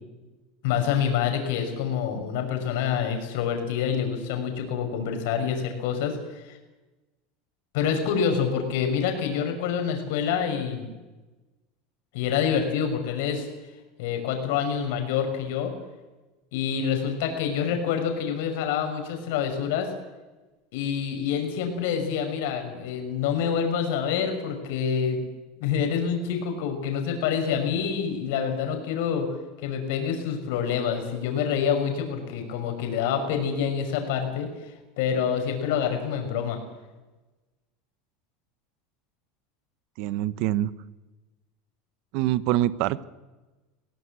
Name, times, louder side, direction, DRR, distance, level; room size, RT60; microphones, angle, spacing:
voice 1, 0.6-6.6 7.7-10.9 12.1-13.5 14.0-15.7 16.5-19.9 20.7-25.2 25.6-29.3 29.6-36.6, left 7 dB, 75° left, 5 dB, 5.4 m, -27 dB
voice 2, 40.0-40.7 42.1-43.0, right 14 dB, 60° right, 16 dB, 1.0 m, -25 dB
21.0 x 17.5 x 8.4 m, 1.1 s
supercardioid pair, 135°, 0 cm